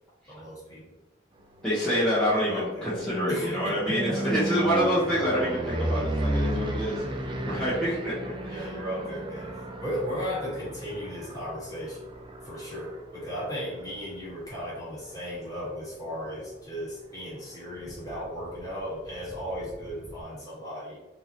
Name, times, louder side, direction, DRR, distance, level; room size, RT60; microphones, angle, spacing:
voice 1, 0.3-0.8 2.4-2.9 3.3-4.2 7.4-7.7 8.5-12.0 12.4-21.0, equal, 20° left, -8 dB, 1.5 m, -36 dB
voice 2, 1.6-8.7, equal, 5° left, -13 dB, 1.0 m, -27 dB
sound 1, 1.6-15.6 16.0-16.5 16.7-16.8 17.1-17.2 17.4-20.2, right 1 dB, 25° right, 0.4 m, -35 dB
3.7 x 2.8 x 3.0 m, 1.1 s
head